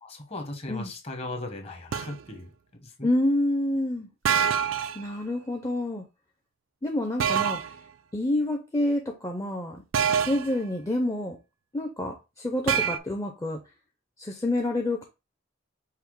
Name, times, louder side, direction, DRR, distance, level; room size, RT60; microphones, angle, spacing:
voice 1, 0.0-2.5 2.8-3.1, left 2 dB, 30° left, 1.0 m, -37 dB
sound 1, 1.9-2.2 4.3-5.0 7.2-7.7 9.9-10.6 12.7-13.0, right 7 dB, 90° right, 0.4 m, -25 dB
voice 2, 3.0-4.1 4.9-6.0 6.8-7.6 8.1-9.8 10.1-11.4 11.7-13.6 14.2-15.0, left 1 dB, 15° left, 0.5 m, -28 dB
5.7 x 2.0 x 4.6 m
head